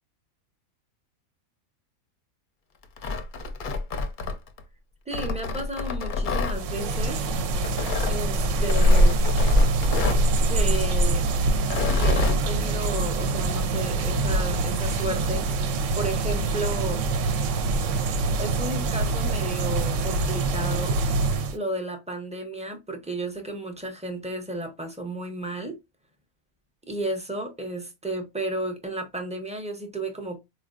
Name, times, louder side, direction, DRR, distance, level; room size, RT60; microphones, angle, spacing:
Tearing, 2.8-4.6 5.1-6.6 7.6-8.2 8.7-10.3 11.6-12.4, left 3 dB, 55° left, 0.5 m, -27 dB
voice 1, 5.1-7.3 8.1-9.2 10.5-11.3 12.0-15.6 15.9-17.0 18.4-21.0 21.5-25.8 26.9-30.4, right 1 dB, 10° right, 0.3 m, -33 dB
sound 1, 6.5-21.6, right 2 dB, 70° right, 0.8 m, -24 dB
4.3 x 2.4 x 2.4 m
omnidirectional pair, 1.5 m